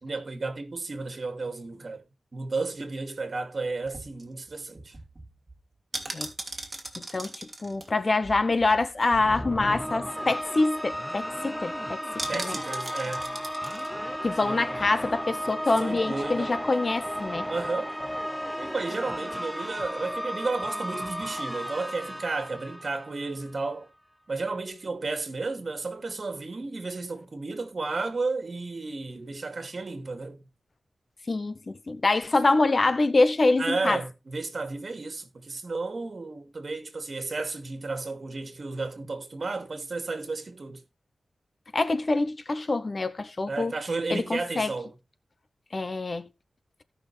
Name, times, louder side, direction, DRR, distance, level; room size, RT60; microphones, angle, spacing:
voice 1, 0.0-2.0 2.3-5.0 12.3-13.4 14.4-14.7 15.8-16.6 17.5-17.9 18.6-23.9 24.3-30.4 33.6-40.8 43.5-44.9, right 3 dB, 50° right, 2.4 m, -33 dB
sound 1, 3.8-9.1 9.4-9.5 9.8-10.0 10.4-10.5 10.8-11.1 12.2-13.9 14.3-14.4, right 2 dB, 25° right, 2.8 m, -39 dB
voice 2, 7.0-12.6 14.2-17.5 31.3-34.0 41.7-43.7 44.1-44.7 45.7-46.3, left 3 dB, 40° left, 0.9 m, -25 dB
sound 2, 9.1-23.5, equal, 5° left, 0.5 m, -34 dB
17.0 x 6.0 x 3.3 m
wide cardioid pair, 105°, 0 cm